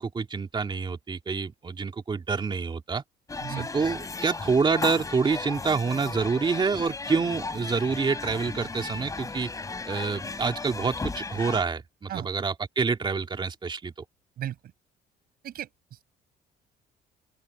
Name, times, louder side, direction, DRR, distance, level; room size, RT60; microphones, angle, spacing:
voice 1, 0.0-3.0 3.7-9.5 9.9-13.9, right 5 dB, 30° right, 2.8 m, -27 dB
sound 1, 3.3-11.6, left 3 dB, 20° left, 3.8 m, -35 dB
voice 2, 3.4-3.7 12.1-12.3 14.4-14.6 15.4-15.7, right 11 dB, 65° right, 6.3 m, -34 dB
open air
cardioid pair, 110°, 17 cm